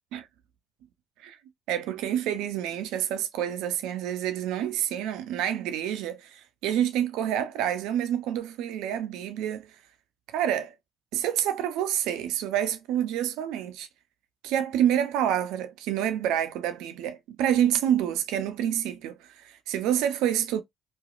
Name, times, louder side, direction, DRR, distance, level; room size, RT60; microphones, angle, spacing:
voice 1, 1.7-9.7 10.3-10.7 11.1-13.9 14.4-20.6, right 10 dB, 85° right, 0.4 m, -28 dB
3.0 x 2.3 x 2.4 m
hypercardioid pair, 55°, 0 cm